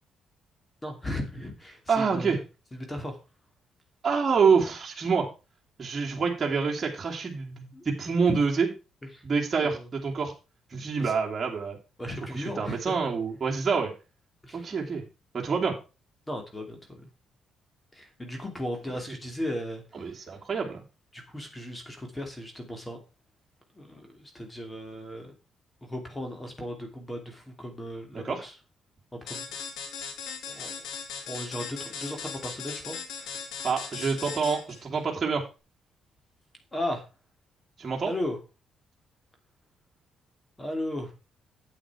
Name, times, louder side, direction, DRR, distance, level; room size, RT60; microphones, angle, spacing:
voice 1, 0.8-2.4 2.7-3.2 7.7-7.8 8.3-8.4 9.1-9.2 9.6-9.8 11.0-11.1 12.0-13.0 14.4-14.7 16.3-17.0 17.9-19.8 21.1-23.0 23.8-25.3 25.8-28.5 29.1-29.5 30.5-30.9 31.3-33.0 36.7-37.1 38.0-38.4 40.6-41.1, left 1 dB, 15° left, 4 dB, 2.5 m, -36 dB
voice 2, 1.9-2.4 4.0-5.3 5.8-8.7 9.2-10.3 10.7-11.8 12.3-13.9 14.5-15.0 15.3-15.7 18.9-19.0 19.9-20.8 28.1-28.4 33.6-35.4 37.8-38.1, right 5 dB, 35° right, -1 dB, 2.4 m, -27 dB
sound 1, 29.3-34.8, left 6 dB, 85° left, 2.1 m, -38 dB
8.6 x 8.2 x 4.8 m, 0.31 s
cardioid pair, 90°, 0 cm